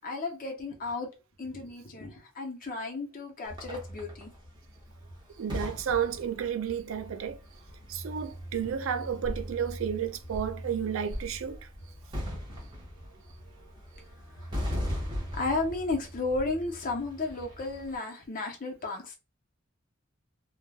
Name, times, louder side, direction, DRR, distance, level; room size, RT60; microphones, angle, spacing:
voice 1, 0.0-1.1 1.4-4.3 13.6-13.7 13.9-14.1 15.3-19.1, left 3 dB, 45° left, 0.7 m, -33 dB
sound 1, 3.4-18.0, equal, 25° right, 1.0 m, -39 dB
voice 2, 5.4-7.4 7.9-11.7, right 8 dB, 75° right, 0.4 m, -32 dB
3.3 x 2.2 x 2.3 m
head